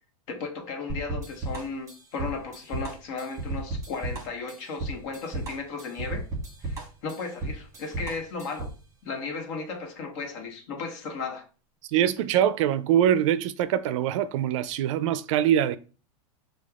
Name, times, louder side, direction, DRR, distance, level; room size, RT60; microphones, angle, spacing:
voice 1, 0.3-6.3 6.6-8.7 9.0-11.4, left 4 dB, 55° left, 1.2 m, -35 dB
sound 1, 0.9-8.8, right 2 dB, 15° right, 1.2 m, -34 dB
voice 2, 11.9-15.8, right 10 dB, 60° right, 0.4 m, -23 dB
6.3 x 2.3 x 2.4 m
supercardioid pair, 130°, 18 cm